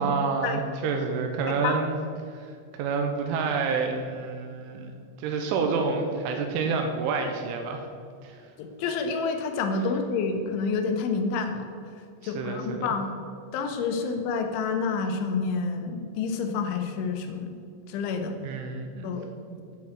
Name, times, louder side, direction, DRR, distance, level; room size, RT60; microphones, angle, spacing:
voice 1, 0.0-2.0 2.3-4.9 5.2-7.9 8.2-8.4 12.2-12.9 18.4-19.1 19.5-19.6, right 4 dB, 90° right, 4 dB, 3.3 m, -28 dB
voice 2, 1.5-1.8 8.6-11.7 12.2-13.1 13.5-17.6 17.9-18.4 19.0-19.3, left 4 dB, 90° left, 5 dB, 3.3 m, -28 dB
9.0 x 5.8 x 7.8 m, 2.2 s
omnidirectional pair, 5.3 m